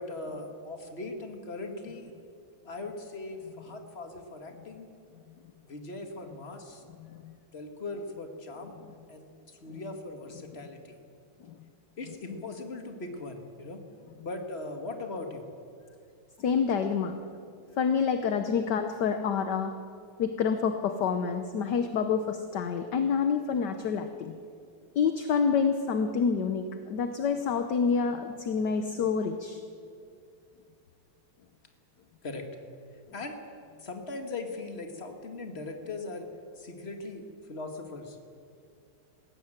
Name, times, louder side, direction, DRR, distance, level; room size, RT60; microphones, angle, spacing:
voice 1, 0.0-2.1 2.6-4.9 5.6-6.8 7.5-8.8 9.1-11.0 12.0-13.8 14.2-15.4 32.2-32.5 33.1-33.4 33.8-36.3 36.6-38.2, left 2 dB, 30° left, 4 dB, 2.1 m, -39 dB
voice 2, 7.0-7.3 9.7-9.8 11.4-11.5 16.4-17.2 17.8-19.7 20.2-24.4 24.9-29.6, left 6 dB, 60° left, 8 dB, 1.3 m, -28 dB
20.0 x 16.5 x 9.0 m, 2.4 s
omnidirectional pair, 2.4 m